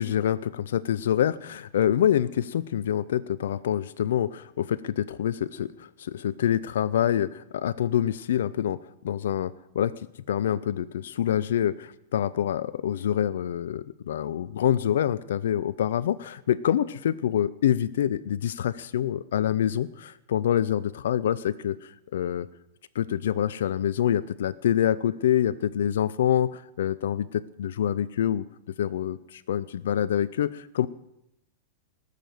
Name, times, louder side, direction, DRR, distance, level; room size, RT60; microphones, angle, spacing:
voice 1, 0.0-8.8 9.0-9.9 10.3-22.5 22.9-28.4 28.8-30.9, left 10 dB, 75° left, 15 dB, 0.5 m, -26 dB
18.5 x 6.8 x 7.8 m, 0.86 s
hypercardioid pair, 110°, 0 cm